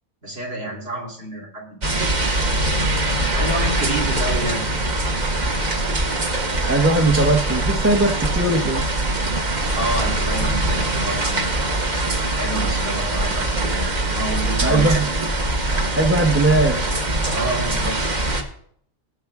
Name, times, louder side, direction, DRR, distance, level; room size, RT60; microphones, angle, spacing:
voice 1, 0.2-2.1 3.3-4.6 9.7-11.5 12.3-15.1 17.3-18.0 18.3-18.4, right 1 dB, 55° right, -4 dB, 3.5 m, -29 dB
sound 1, 1.8-18.4, right 2 dB, 40° right, 1.3 m, -22 dB
voice 2, 6.7-8.9 14.6-15.1 15.9-17.0, right 2 dB, 10° right, 4 dB, 0.8 m, -19 dB
17.5 x 8.0 x 3.6 m, 0.65 s
omnidirectional pair, 1.2 m